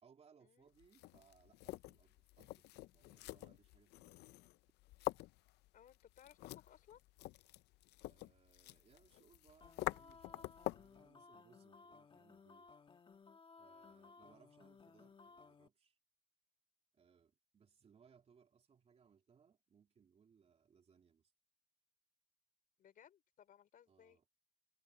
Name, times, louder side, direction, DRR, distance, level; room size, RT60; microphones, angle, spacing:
voice 1, 0.0-4.3 8.0-12.7 13.6-16.0 16.9-21.3 23.9-24.2, right 6 dB, 40° right, 3.2 m, -69 dB
sound 1, 0.8-11.0, left 18 dB, 80° left, 0.5 m, -47 dB
voice 2, 5.7-7.0 22.8-24.2, left 9 dB, 55° left, 4.4 m, -63 dB
sound 2, 9.6-15.7, left 4 dB, 30° left, 1.7 m, -61 dB
cardioid pair, 110°, 17 cm